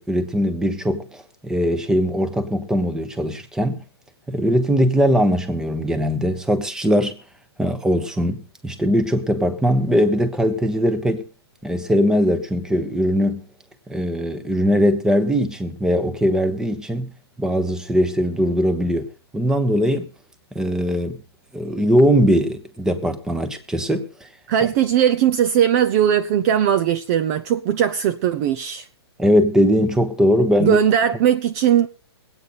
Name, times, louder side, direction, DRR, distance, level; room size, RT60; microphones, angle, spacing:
voice 1, 0.0-3.8 4.3-7.2 7.6-11.2 11.6-13.4 13.9-17.1 17.4-19.1 19.3-20.1 20.5-21.2 21.5-24.3 29.2-30.8, equal, 5° right, 1.1 m, -20 dB
voice 2, 24.5-28.9 30.6-31.9, right 10 dB, 35° right, 0.6 m, -19 dB
21.0 x 8.9 x 4.1 m
hypercardioid pair, 145°, 14 cm